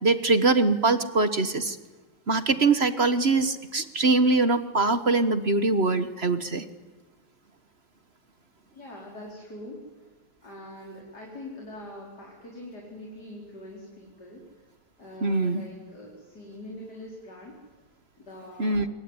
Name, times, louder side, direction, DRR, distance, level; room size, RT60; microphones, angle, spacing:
voice 1, 0.0-1.8 2.3-6.6 15.2-15.6 18.6-18.9, right 3 dB, 35° right, 12 dB, 1.2 m, -23 dB
voice 2, 8.7-10.1 10.4-14.7 15.0-17.6 18.2-18.8, left 1 dB, 50° left, -1 dB, 5.2 m, -43 dB
27.0 x 22.5 x 9.8 m, 1.2 s
omnidirectional pair, 2.2 m